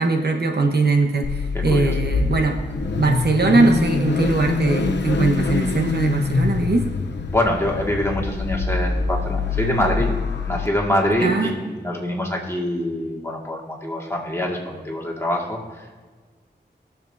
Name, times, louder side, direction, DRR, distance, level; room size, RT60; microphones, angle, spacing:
voice 1, 0.0-2.6 3.0-6.9 11.2-11.6, right 3 dB, 65° right, 3 dB, 1.1 m, -20 dB
Car / Idling / Accelerating revving vroom, 1.2-10.7, left 4 dB, 85° left, 0.8 m, -24 dB
voice 2, 1.5-2.0 7.3-10.2 10.5-16.0, left 1 dB, 15° left, -2 dB, 2.0 m, -25 dB
20.0 x 7.2 x 2.7 m, 1.4 s
wide cardioid pair, 80°, 18 cm